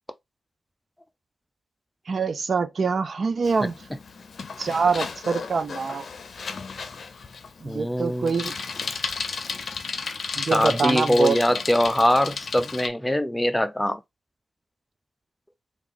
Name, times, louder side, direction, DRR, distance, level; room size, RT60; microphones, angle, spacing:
voice 1, 2.1-3.7 4.6-6.0 7.6-8.5 10.4-11.4, right 5 dB, 60° right, 0.4 m, -25 dB
Bicycle, 3.4-12.9, left 5 dB, 65° left, 0.5 m, -34 dB
voice 2, 7.6-8.3 10.3-14.0, left 1 dB, 10° left, 0.4 m, -22 dB
3.4 x 2.4 x 3.7 m
cardioid pair, 65°, 0 cm